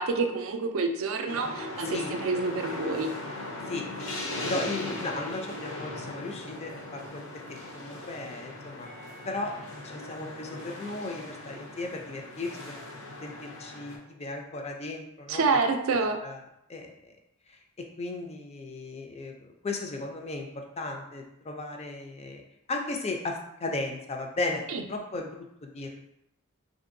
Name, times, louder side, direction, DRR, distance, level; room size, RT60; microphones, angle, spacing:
voice 1, 0.0-3.1 15.3-16.2 24.7-24.8, right 4 dB, 65° right, 5 dB, 0.4 m, -28 dB
sound 1, 1.3-14.0, left 2 dB, 65° left, 0.6 m, -39 dB
voice 2, 4.4-7.2 7.5-8.9 9.3-9.5 9.8-12.7 13.0-15.5 15.9-16.4 16.7-17.1 17.5-22.4 22.7-26.0, left 2 dB, 30° left, 2 dB, 0.4 m, -36 dB
3.6 x 2.6 x 2.5 m, 0.81 s
head